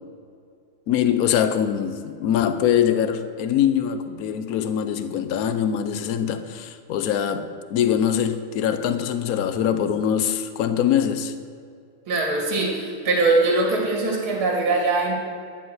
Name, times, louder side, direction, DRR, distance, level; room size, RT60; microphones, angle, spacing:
voice 1, 0.9-11.3, left 9 dB, 80° left, 10 dB, 0.8 m, -23 dB
voice 2, 12.1-15.1, right 3 dB, 70° right, 0 dB, 3.0 m, -22 dB
12.5 x 5.7 x 9.2 m, 2.3 s
omnidirectional pair, 2.4 m